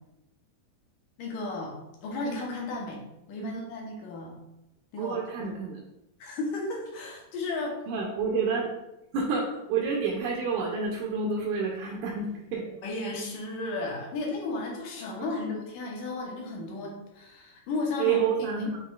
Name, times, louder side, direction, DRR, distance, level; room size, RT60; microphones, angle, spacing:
voice 1, 1.2-1.7 2.0-3.0 3.3-4.4 4.9-5.2 6.2-7.8 12.8-18.2 18.5-18.6, left 2 dB, 80° left, -1 dB, 2.4 m, -34 dB
voice 2, 5.0-5.8 7.9-8.7 9.1-12.7 15.2-15.5 18.0-18.8, right 5 dB, 80° right, -1 dB, 2.0 m, -29 dB
7.3 x 3.1 x 2.3 m, 0.92 s
omnidirectional pair, 3.5 m